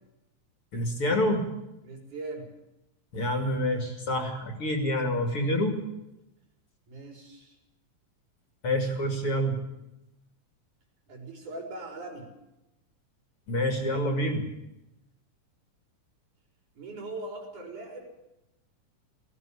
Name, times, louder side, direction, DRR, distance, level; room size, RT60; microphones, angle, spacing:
voice 1, 0.7-1.4 3.1-5.8 8.6-9.6 13.5-14.4, left 1 dB, 45° left, 4 dB, 3.2 m, -27 dB
voice 2, 1.8-2.5 6.9-7.6 11.1-12.3 16.7-18.1, right 2 dB, 70° right, 2 dB, 5.8 m, -40 dB
18.0 x 15.5 x 10.0 m, 0.91 s
omnidirectional pair, 3.6 m